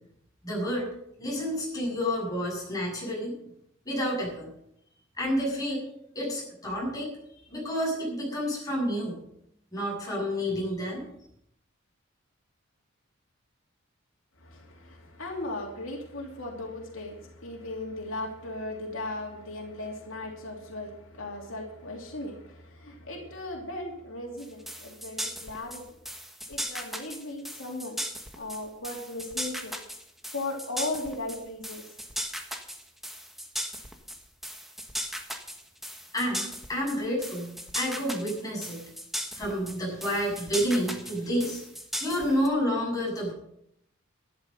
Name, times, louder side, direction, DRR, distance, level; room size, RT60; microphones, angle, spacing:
voice 1, 0.4-0.9 1.2-3.3 3.8-4.5 5.2-5.8 6.1-7.1 7.5-9.2 9.7-11.0 36.1-38.8 39.4-41.6 42.0-43.3, equal, 20° left, -3 dB, 7.4 m, -29 dB
voice 2, 14.4-25.9 26.5-28.0 28.3-29.7 30.3-31.8, left 2 dB, 80° left, 0 dB, 2.8 m, -37 dB
sound 1, 24.4-42.5, equal, ahead, 1.4 m, -37 dB
12.5 x 11.0 x 6.6 m, 0.75 s
head